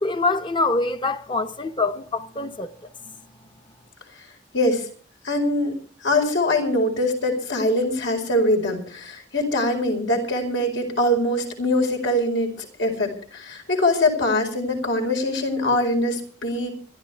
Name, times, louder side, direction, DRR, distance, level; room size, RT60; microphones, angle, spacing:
voice 1, 0.0-2.7 3.1-3.2, left 3 dB, 25° left, 0.8 m, -25 dB
voice 2, 4.5-4.8 5.2-5.7 6.0-16.7, left 1 dB, 85° left, 4.7 m, -23 dB
25.5 x 12.5 x 3.4 m
head